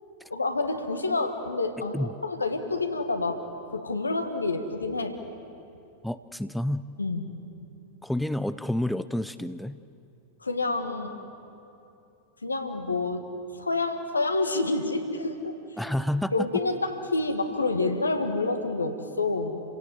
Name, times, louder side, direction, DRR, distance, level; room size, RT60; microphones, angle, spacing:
voice 1, 0.3-3.4 3.7-5.1 7.0-7.4 10.4-11.1 12.4-13.2 13.6-15.5 16.3-19.6, left 3 dB, 80° left, 6 dB, 1.8 m, -28 dB
voice 2, 6.0-6.8 8.0-9.8 15.8-16.3, left 1 dB, ahead, 13 dB, 0.5 m, -29 dB
29.5 x 17.0 x 7.9 m, 2.8 s
figure-of-eight pair, 90°, 0 cm